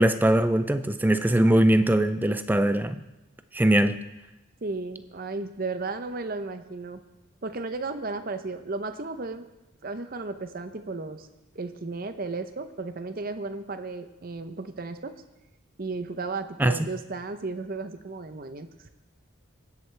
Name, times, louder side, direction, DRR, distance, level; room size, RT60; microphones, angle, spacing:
voice 1, 0.0-3.0 3.5-4.0 16.6-16.8, right 1 dB, 10° right, 10 dB, 0.3 m, -21 dB
voice 2, 4.6-7.0 7.4-9.5 9.8-11.3 11.5-15.1 15.8-18.9, right 3 dB, 45° right, 9 dB, 0.7 m, -34 dB
19.5 x 7.8 x 3.3 m, 1.0 s
head